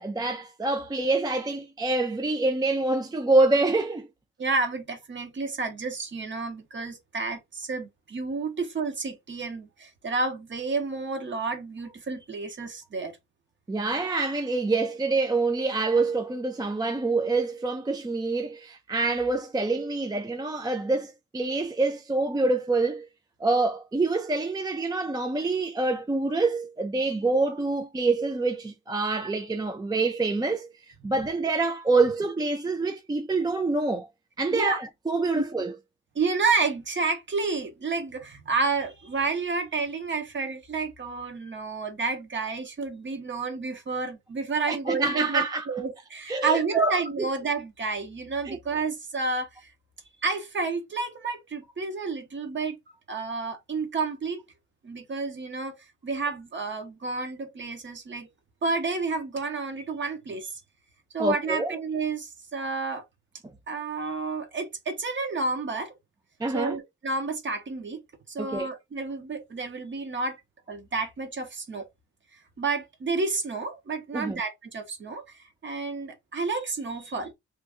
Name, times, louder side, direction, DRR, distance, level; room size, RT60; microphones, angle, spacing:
voice 1, 0.0-4.1 13.7-23.1 23.4-30.7 31.0-34.1 34.4-35.7 44.7-45.7 46.3-47.3 48.4-48.6 61.2-61.7 66.4-66.8 68.4-68.7 74.1-74.4, right 3 dB, 15° right, 0.5 m, -26 dB
voice 2, 4.4-13.2 34.5-34.8 35.3-35.4 36.1-49.7 50.2-52.8 53.1-54.4 54.8-55.8 56.0-58.3 58.6-60.5 61.1-63.0 63.7-65.9 66.5-68.0 68.3-70.4 70.7-71.9 72.6-75.2 75.6-77.3, right 4 dB, 40° right, 1.3 m, -30 dB
3.1 x 2.6 x 3.5 m
cardioid pair, 90°, 30 cm